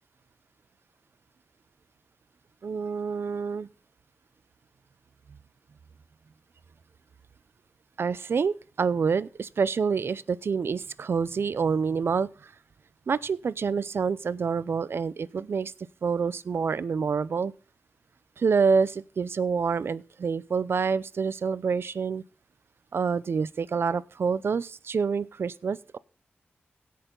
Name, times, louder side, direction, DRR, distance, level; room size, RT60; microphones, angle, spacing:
voice 1, 2.6-3.7 8.0-12.5 13.1-15.7 16.0-17.5 18.4-22.2 22.9-26.0, right 5 dB, 65° right, 0.6 m, -27 dB
17.0 x 6.7 x 3.9 m
cardioid pair, 70°, 4 cm